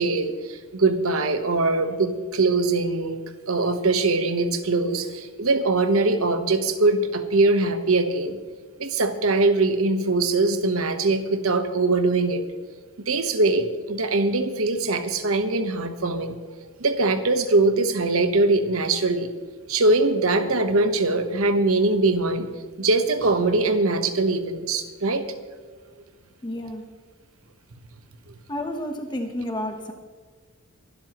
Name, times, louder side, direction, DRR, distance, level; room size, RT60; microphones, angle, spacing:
voice 1, 0.0-3.2 3.5-8.4 8.8-12.4 13.0-16.3 16.8-19.3 19.7-22.5 22.8-25.3, right 2 dB, 70° right, 8 dB, 1.1 m, -22 dB
voice 2, 26.4-26.9 28.5-29.9, left 1 dB, 20° left, 4 dB, 1.1 m, -30 dB
23.5 x 12.5 x 3.1 m, 1.5 s
head